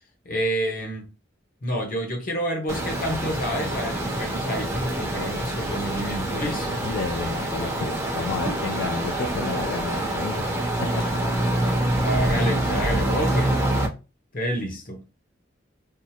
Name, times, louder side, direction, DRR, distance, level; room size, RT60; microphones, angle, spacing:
voice 1, 0.2-1.1 1.6-6.9 11.9-13.6 14.3-15.0, equal, 50° left, 0.9 m, -29 dB
sound 1, 2.7-13.9, right 1 dB, 15° right, 0.8 m, -26 dB
voice 2, 6.8-11.6, left 5 dB, 75° left, 0.3 m, -32 dB
3.5 x 2.0 x 2.8 m
head